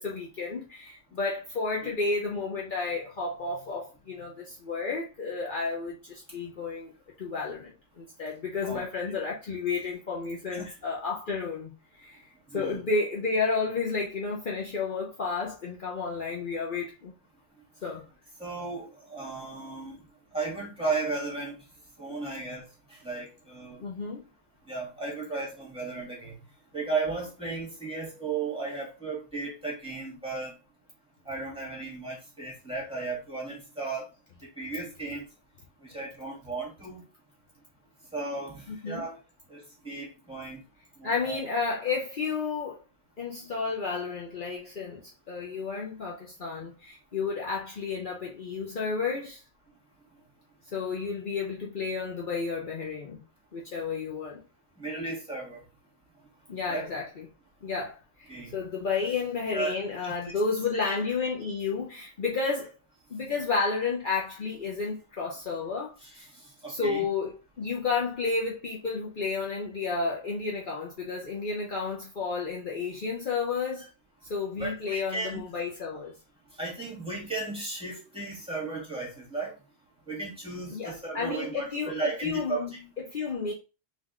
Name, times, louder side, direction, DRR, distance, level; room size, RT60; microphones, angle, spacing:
voice 1, 0.0-6.9 7.2-12.2 12.5-17.1 17.8-18.1 23.8-24.2 38.7-39.1 41.0-42.8 43.2-49.4 50.7-53.2 53.5-54.4 56.5-57.3 57.6-62.7 63.1-66.3 66.7-73.9 74.2-76.2 80.7-83.5, left 4 dB, 50° left, 0.9 m, -32 dB
voice 2, 8.6-9.1 10.5-10.7 12.5-12.8 18.4-20.0 20.3-21.6 22.0-23.8 24.7-26.3 26.7-30.5 31.3-34.1 34.6-35.3 35.8-37.0 38.1-39.2 39.5-40.6 41.0-41.4 54.8-55.6 56.7-56.9 58.3-58.6 59.5-59.8 60.0-60.3 60.7-61.0 66.0-66.2 66.6-67.1 73.8-73.9 74.6-75.4 76.6-79.5 80.1-82.7, right 3 dB, 5° right, 2.1 m, -35 dB
3.7 x 3.4 x 3.6 m
omnidirectional pair, 1.1 m